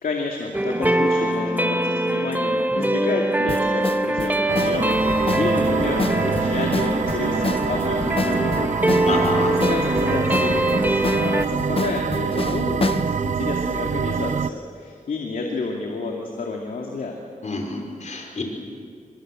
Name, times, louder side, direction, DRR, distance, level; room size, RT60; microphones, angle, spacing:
voice 1, 0.0-8.9 9.5-17.2, left 3 dB, 90° left, 0 dB, 2.5 m, -30 dB
sound 1, 0.5-11.4, right 1 dB, 10° right, 1.8 m, -23 dB
sound 2, 3.5-13.1, left 3 dB, 40° left, 1.3 m, -29 dB
sound 3, 4.5-14.5, right 6 dB, 60° right, 0.7 m, -25 dB
voice 2, 9.1-9.5 17.4-18.4, left 2 dB, 55° left, 2 dB, 5.1 m, -28 dB
24.5 x 24.0 x 7.8 m, 2.2 s
wide cardioid pair, 90°, 14 cm